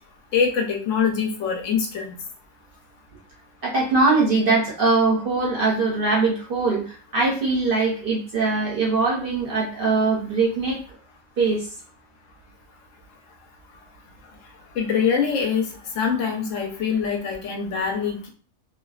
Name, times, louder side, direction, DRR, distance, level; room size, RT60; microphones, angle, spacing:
voice 1, 0.3-2.1 14.7-15.7 15.9-18.3, left 6 dB, 70° left, 2 dB, 0.9 m, -24 dB
voice 2, 3.6-10.8 11.4-11.7, right 3 dB, 55° right, -4 dB, 0.6 m, -22 dB
2.5 x 2.2 x 2.3 m, 0.40 s
omnidirectional pair, 1.4 m